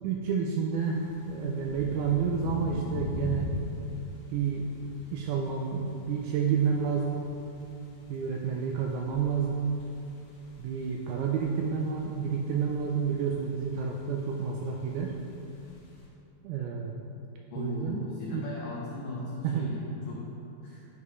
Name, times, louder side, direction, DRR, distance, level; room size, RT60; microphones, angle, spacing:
voice 1, 0.0-3.6 4.3-4.7 5.1-7.3 8.1-9.8 10.6-15.2 16.4-17.0 17.6-18.5 19.4-19.7, right 6 dB, 85° right, 0 dB, 2.2 m, -30 dB
sound 1, 0.7-16.1, left 1 dB, 65° left, 1.9 m, -42 dB
voice 2, 17.5-20.3 20.6-20.8, left 3 dB, 90° left, -5 dB, 1.9 m, -38 dB
10.5 x 5.8 x 3.1 m, 2.7 s
omnidirectional pair, 4.9 m